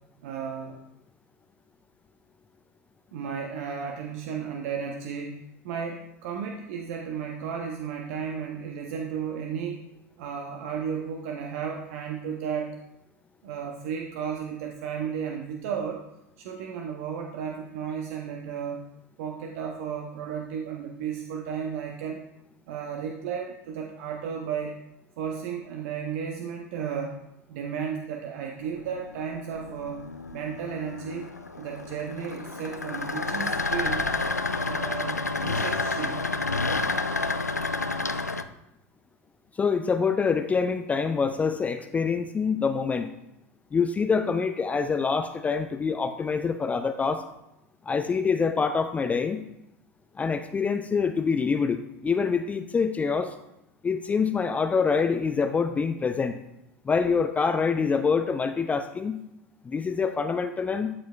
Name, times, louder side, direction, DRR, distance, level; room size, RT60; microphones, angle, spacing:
voice 1, 0.2-0.8 3.1-9.8 10.2-12.8 13.4-16.0 16.4-18.8 19.2-22.2 22.7-24.8 25.2-27.2 27.5-30.0 30.3-31.3 31.6-34.1 34.6-36.3, right 7 dB, 55° right, 2 dB, 0.7 m, -34 dB
sound 1, 28.6-38.4, left 3 dB, 90° left, 0.4 m, -30 dB
voice 2, 39.6-43.1 43.7-47.2 47.9-49.4 50.2-53.3 53.8-56.4 56.9-59.2 59.6-60.9, left 5 dB, 15° left, 8 dB, 0.4 m, -25 dB
12.0 x 4.6 x 2.4 m, 0.87 s
figure-of-eight pair, 80°, 9 cm